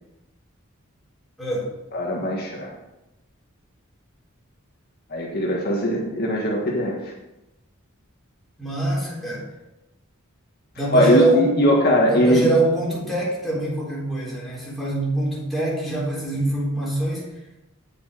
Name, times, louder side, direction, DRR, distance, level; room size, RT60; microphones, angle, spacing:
voice 1, 1.4-1.7 8.6-9.5 10.7-11.5 12.1-17.3, right 2 dB, ahead, -6 dB, 3.8 m, -24 dB
voice 2, 1.9-2.7 5.1-7.1 10.9-12.5, equal, 50° left, -2 dB, 1.7 m, -20 dB
9.0 x 6.9 x 6.6 m, 0.96 s
head